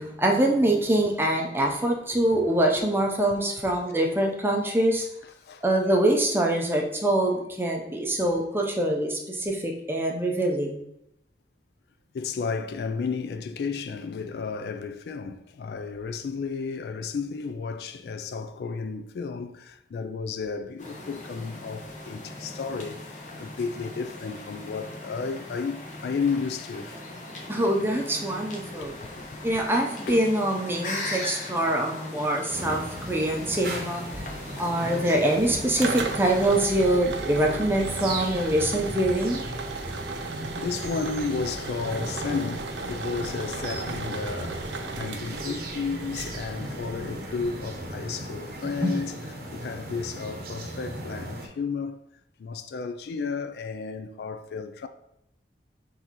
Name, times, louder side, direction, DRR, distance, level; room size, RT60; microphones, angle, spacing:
voice 1, 0.0-5.1 5.6-10.8 27.5-28.9 29.4-39.4 48.8-48.9, right 1 dB, 15° right, 0.5 m, -24 dB
voice 2, 12.1-27.0 28.8-29.2 30.1-30.2 40.6-44.7 45.0-49.1 49.5-52.0 52.4-54.9, left 5 dB, 60° left, 0.3 m, -33 dB
sound 1, 20.8-36.6, left 2 dB, 45° left, 0.8 m, -39 dB
sound 2, 32.5-51.5, right 1 dB, 55° right, 0.8 m, -37 dB
sound 3, 35.4-47.9, right 3 dB, 85° right, 0.5 m, -36 dB
6.0 x 2.7 x 2.9 m
head